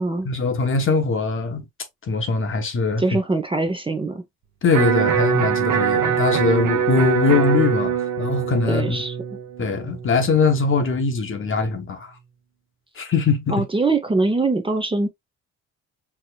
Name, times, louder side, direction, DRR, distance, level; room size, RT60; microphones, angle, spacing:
voice 1, 0.2-1.6 2.1-3.0 4.6-9.0 9.6-12.1 13.0-13.5, left 4 dB, 45° left, 1.0 m, -21 dB
voice 2, 3.0-4.2 8.6-9.2 13.5-15.1, right 3 dB, 15° right, 0.7 m, -22 dB
Electric guitar, 4.7-10.8, right 8 dB, 80° right, 1.0 m, -23 dB
4.8 x 2.9 x 2.3 m
cardioid pair, 90°, 30 cm